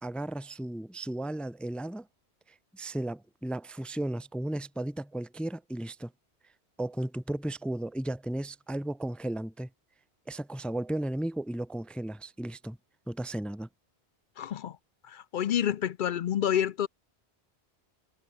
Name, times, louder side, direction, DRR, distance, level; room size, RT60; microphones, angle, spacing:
voice 1, 0.0-2.1 2.7-6.1 6.8-9.7 10.3-12.8 13.1-13.7, right 1 dB, ahead, 0.7 m, -34 dB
voice 2, 14.4-14.8 15.0-16.9, left 10 dB, 60° left, 0.6 m, -28 dB
omnidirectional pair, 1.1 m